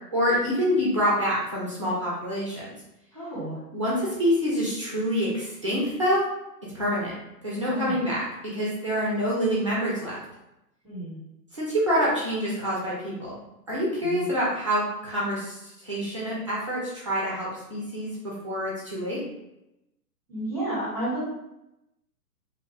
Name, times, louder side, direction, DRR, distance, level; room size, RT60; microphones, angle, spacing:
voice 1, 0.1-2.7 3.7-6.3 6.7-7.1 7.4-8.2 8.5-10.2 11.5-13.3 13.7-19.2, equal, 20° right, -6 dB, 0.4 m, -26 dB
voice 2, 3.1-3.6 7.7-7.9 10.8-11.2 14.0-14.3 20.3-21.2, right 1 dB, 5° left, -10 dB, 1.1 m, -31 dB
2.6 x 2.2 x 2.9 m, 0.89 s
figure-of-eight pair, 125°, 50 cm